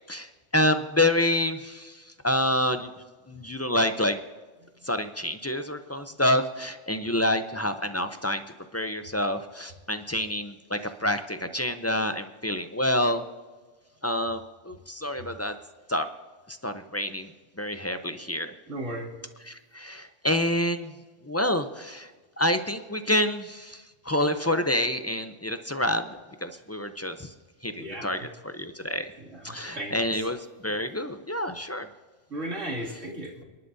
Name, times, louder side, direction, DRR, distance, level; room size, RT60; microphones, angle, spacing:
voice 1, 0.1-2.9 3.3-4.2 4.8-8.4 8.7-13.2 14.0-14.4 14.6-15.5 15.9-16.1 16.5-17.3 17.6-18.5 19.4-20.9 21.2-22.1 22.4-27.3 27.6-29.1 29.4-31.9, left 1 dB, 20° left, 8 dB, 0.4 m, -28 dB
voice 2, 18.7-19.1 27.8-28.1 29.3-30.0 32.3-33.4, right 1 dB, 75° right, -3 dB, 2.9 m, -35 dB
28.5 x 11.5 x 2.7 m, 1.4 s
omnidirectional pair, 1.3 m